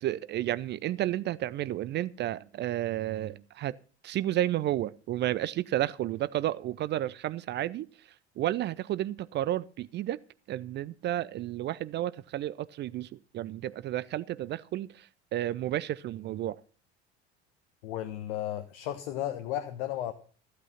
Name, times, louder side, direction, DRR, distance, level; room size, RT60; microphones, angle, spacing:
voice 1, 0.0-3.8 4.0-7.9 8.4-10.2 10.5-16.6, right 13 dB, 35° right, 0.5 m, -32 dB
voice 2, 17.8-20.1, left 12 dB, 60° left, 1.3 m, -34 dB
15.0 x 8.5 x 5.7 m
figure-of-eight pair, 70°, 33 cm